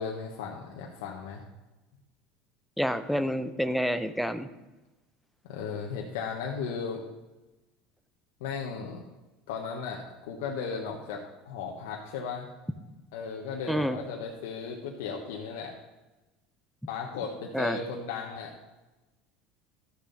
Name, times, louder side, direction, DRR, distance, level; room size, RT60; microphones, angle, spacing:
voice 1, 0.0-1.4 5.5-7.0 8.4-9.0 9.5-12.5 13.1-15.7 16.9-18.5, left 5 dB, 80° left, 0 dB, 1.2 m, -36 dB
voice 2, 2.8-4.5 13.7-14.0 17.5-17.8, equal, ahead, 10 dB, 0.6 m, -28 dB
12.5 x 6.8 x 4.1 m, 1.1 s
supercardioid pair, 110°, 0 cm